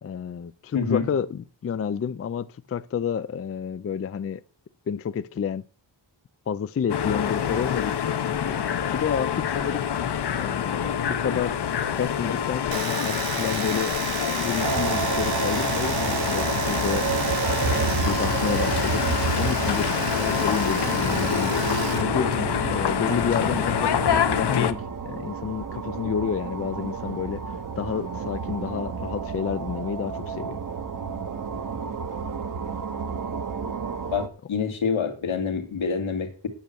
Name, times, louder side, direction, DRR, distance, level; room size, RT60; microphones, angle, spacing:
voice 1, 0.0-4.4 4.9-5.6 6.5-8.6 8.9-9.8 10.4-11.6 11.9-14.0 14.3-17.1 17.6-19.1 19.4-22.3 22.7-24.8 25.0-30.6, left 7 dB, 35° left, 0.4 m, -30 dB
sound 1, 6.9-24.7, left 8 dB, 60° left, 0.9 m, -26 dB
Domestic sounds home sounds, 12.7-22.0 22.3-23.1, right 10 dB, 75° right, 0.7 m, -34 dB
sound 2, 14.6-34.3, right 5 dB, 45° right, 1.0 m, -30 dB
voice 2, 34.1-36.5, left 6 dB, 85° left, 2.2 m, -26 dB
9.0 x 8.1 x 6.9 m
wide cardioid pair, 140°, 46 cm